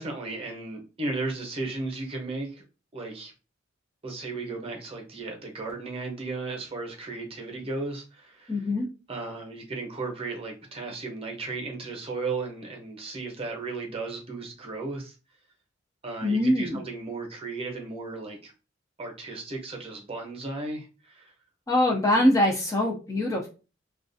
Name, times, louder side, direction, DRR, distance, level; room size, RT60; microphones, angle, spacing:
voice 1, 0.0-2.6 2.9-3.3 4.0-8.5 9.1-15.1 16.0-18.5 19.0-21.3, right 3 dB, 30° right, 1 dB, 0.7 m, -35 dB
voice 2, 8.5-8.9 16.2-16.8 21.7-23.5, left 1 dB, 15° left, -1 dB, 0.4 m, -23 dB
2.3 x 2.2 x 2.6 m, 0.32 s
head